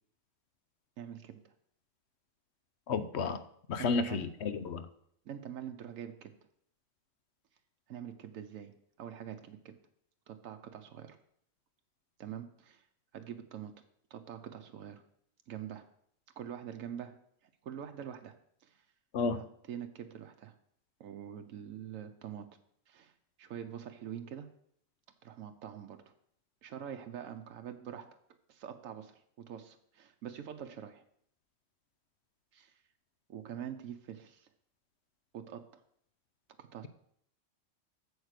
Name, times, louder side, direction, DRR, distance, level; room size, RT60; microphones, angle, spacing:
voice 1, 1.0-1.5 3.8-4.3 5.2-6.3 7.9-9.8 10.3-11.2 12.2-12.8 13.1-13.7 14.1-15.0 15.5-15.9 16.4-17.2 17.6-18.8 19.3-20.5 21.0-22.5 22.9-23.1 23.4-24.5 25.2-26.1 26.6-28.2 28.5-31.0 32.5-32.8 33.3-34.5 35.3-35.8 36.6-36.9, right 9 dB, 90° right, 6 dB, 1.2 m, -45 dB
voice 2, 2.9-3.4 3.7-4.9 19.1-19.4, left 4 dB, 60° left, 12 dB, 0.9 m, -32 dB
8.0 x 7.3 x 6.6 m, 0.69 s
omnidirectional pair, 1.3 m